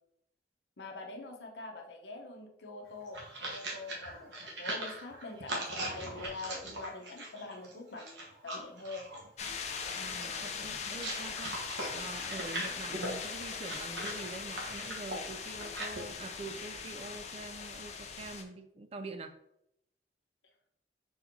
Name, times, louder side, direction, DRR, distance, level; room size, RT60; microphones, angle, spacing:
voice 1, 0.8-9.1, left 3 dB, 80° left, 3 dB, 0.8 m, -44 dB
sound 1, 2.9-16.0, right 1 dB, 80° right, 1.1 m, -40 dB
sound 2, 9.4-18.4, left 6 dB, 40° left, 0.5 m, -40 dB
voice 2, 10.0-11.6 11.9-19.4, right 3 dB, 35° right, 8 dB, 0.3 m, -45 dB
4.4 x 4.0 x 2.7 m, 0.75 s
head